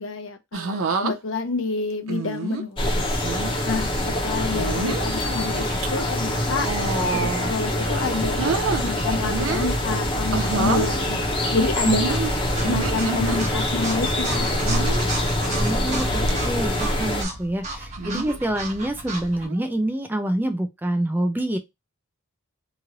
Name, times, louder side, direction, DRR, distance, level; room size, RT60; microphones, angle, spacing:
voice 1, 0.0-3.2 3.6-6.7 7.1-11.2 11.5-12.2 12.6-14.7, left 3 dB, 60° left, 0.7 m, -28 dB
sound 1, 0.5-1.1 2.1-2.6 3.2-3.5 4.5-5.1 5.6-5.9 6.6-7.5 7.9-8.8 9.3-9.8 10.3-10.9 11.8-13.4 14.6-15.1 15.7-16.0 16.3-16.4 18.0-18.4 19.4-19.7, right 4 dB, 65° right, 0.5 m, -28 dB
sound 2, 2.8-17.2, left 1 dB, 25° left, 0.8 m, -24 dB
sound 3, 4.5-19.5, right 3 dB, 30° right, 1.0 m, -38 dB
voice 2, 15.6-21.6, right 1 dB, 10° right, 0.3 m, -26 dB
3.0 x 2.5 x 2.8 m
head